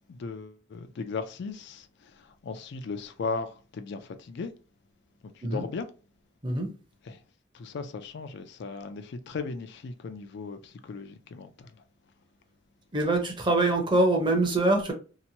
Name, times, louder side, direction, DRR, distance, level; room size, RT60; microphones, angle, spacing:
voice 1, 0.1-4.5 5.3-5.9 7.1-7.2 7.5-11.7, left 4 dB, 65° left, 0.4 m, -37 dB
voice 2, 12.9-14.9, right 2 dB, 25° right, 0.7 m, -24 dB
2.9 x 2.1 x 2.7 m
head